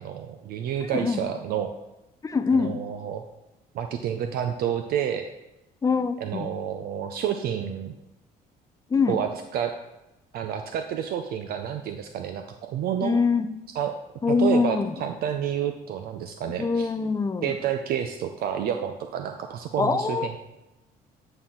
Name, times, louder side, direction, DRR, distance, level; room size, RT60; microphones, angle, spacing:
voice 1, 0.0-1.7 2.5-3.2 3.7-5.3 6.2-8.0 9.1-9.7 10.3-13.2 13.8-13.9 14.4-16.9 17.4-20.3, right 9 dB, 65° right, 6 dB, 0.4 m, -29 dB
voice 2, 0.8-1.2 2.2-2.8 5.8-6.5 8.9-9.2 13.0-13.5 14.2-14.9 16.6-17.6 19.8-20.4, left 4 dB, 20° left, 10 dB, 0.4 m, -24 dB
8.7 x 4.3 x 3.7 m, 0.97 s
cardioid pair, 110°, 17 cm